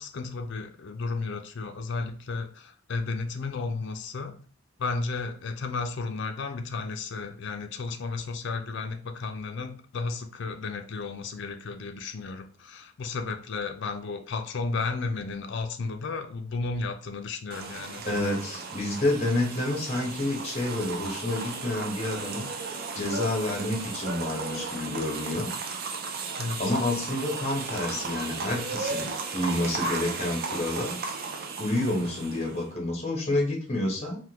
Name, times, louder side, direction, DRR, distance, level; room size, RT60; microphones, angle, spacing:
voice 1, 0.0-4.4 4.8-18.0 26.4-26.6, left 4 dB, 55° left, 6 dB, 0.4 m, -33 dB
sound 1, 17.5-32.7, right 4 dB, 45° right, 0.4 m, -35 dB
voice 2, 18.0-22.5 22.9-25.5 26.6-29.1 29.3-31.0 31.6-34.2, left 1 dB, 30° left, -1 dB, 1.0 m, -29 dB
3.4 x 2.2 x 2.8 m, 0.43 s
head